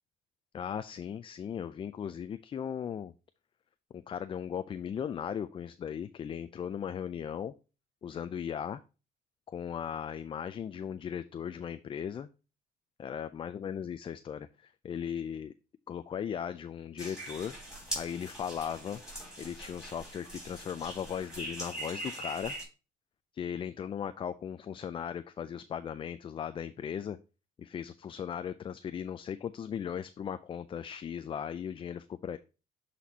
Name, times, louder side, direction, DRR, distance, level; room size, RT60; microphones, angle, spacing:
voice 1, 0.5-3.1 3.9-7.5 8.0-8.8 9.5-12.3 13.0-15.5 15.9-17.6 17.9-19.0 19.4-22.5 23.3-27.2 27.6-32.4, left 8 dB, 30° left, 12 dB, 0.3 m, -37 dB
sound 1, 17.0-22.6, right 1 dB, 5° right, 4.2 m, -42 dB
11.0 x 4.2 x 2.8 m, 0.32 s
cardioid pair, 110°, 17 cm